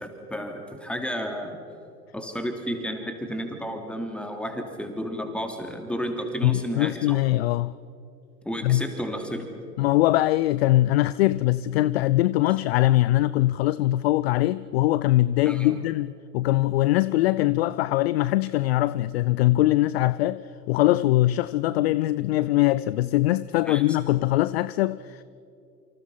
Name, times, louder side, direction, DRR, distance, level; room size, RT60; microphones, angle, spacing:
voice 1, 0.0-1.6 2.1-7.2 8.4-9.5 15.4-15.8 23.6-23.8, equal, ahead, 3.3 m, -32 dB
voice 2, 6.4-7.7 8.6-8.8 9.8-25.2, left 16 dB, 40° left, 0.5 m, -22 dB
28.5 x 26.0 x 5.7 m
figure-of-eight pair, 100°, 49 cm